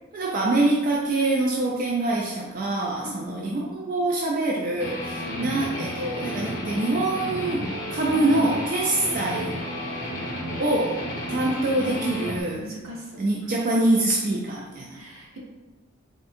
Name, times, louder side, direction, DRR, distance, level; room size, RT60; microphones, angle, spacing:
voice 1, 0.1-9.6 9.9-10.1 10.6-12.6 13.2-15.0, right 2 dB, 40° right, -3 dB, 0.3 m, -25 dB
voice 2, 3.0-3.5 5.2-5.5 10.4-10.6 11.5-11.6 12.6-13.3 14.9-15.4, equal, 75° right, -3 dB, 0.9 m, -40 dB
Guitar, 4.8-12.4, equal, 45° left, 0.8 m, -32 dB
3.7 x 2.5 x 2.4 m, 1.1 s
head